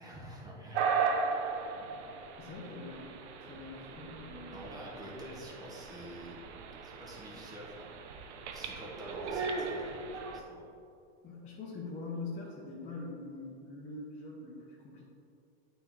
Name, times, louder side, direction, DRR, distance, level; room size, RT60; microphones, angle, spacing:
voice 1, 0.0-0.9 1.3-1.4 4.5-6.4 6.8-7.9 8.5-10.7, equal, 10° right, -3 dB, 1.3 m, -47 dB
sound 1, 0.7-10.4, right 5 dB, 85° right, 0.9 m, -37 dB
voice 2, 2.4-3.2 3.5-4.8 5.1-5.3 11.2-15.1, left 3 dB, 20° left, -7 dB, 1.1 m, -44 dB
9.0 x 4.6 x 4.1 m, 2.5 s
supercardioid pair, 150°, 33 cm